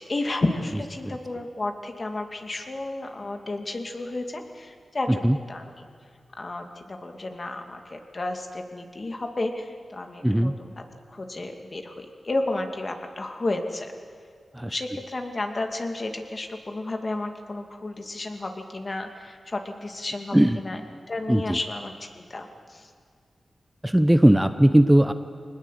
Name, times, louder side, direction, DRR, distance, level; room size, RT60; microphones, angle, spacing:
voice 1, 0.0-5.9 6.4-10.8 11.1-13.9 14.6-20.8 21.1-22.9, left 2 dB, 45° left, 5 dB, 2.4 m, -32 dB
voice 2, 10.2-10.5 14.5-14.8 20.3-20.6 21.3-21.6 23.8-25.1, right 1 dB, 10° right, 10 dB, 0.9 m, -19 dB
22.5 x 19.5 x 8.3 m, 2.1 s
cardioid pair, 60°, 0 cm